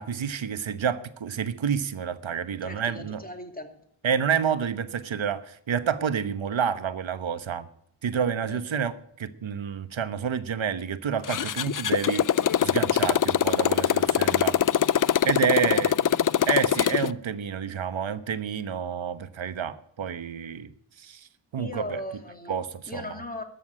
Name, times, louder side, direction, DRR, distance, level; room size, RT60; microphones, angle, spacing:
voice 1, 0.0-3.2 4.0-7.7 8.0-12.2 12.6-14.6 15.2-15.9 16.5-20.7 21.0-21.3 21.5-22.0 22.5-23.2, right 7 dB, 65° right, 12 dB, 1.2 m, -29 dB
voice 2, 2.6-3.8 4.4-4.5 8.4-8.6 15.4-16.2 21.6-22.5 22.9-23.4, left 1 dB, 15° left, 4 dB, 2.7 m, -38 dB
Motorcycle, 11.2-17.1, left 9 dB, 40° left, 0.5 m, -23 dB
13.0 x 7.1 x 9.8 m, 0.68 s
cardioid pair, 60°, 50 cm